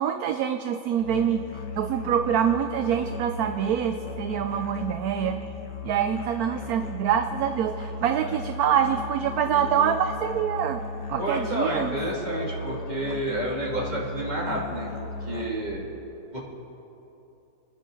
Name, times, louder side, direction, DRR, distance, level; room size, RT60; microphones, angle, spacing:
voice 1, 0.0-1.4 1.8-5.4 5.8-10.8 11.1-12.0 12.4-12.5, right 9 dB, 70° right, 8 dB, 1.0 m, -25 dB
Musical instrument, 1.0-15.7, left 3 dB, 80° left, 1.9 m, -36 dB
voice 2, 11.2-15.9 16.3-16.4, right 1 dB, 25° right, -4 dB, 2.6 m, -30 dB
29.5 x 10.5 x 3.9 m, 2.9 s
omnidirectional pair, 1.8 m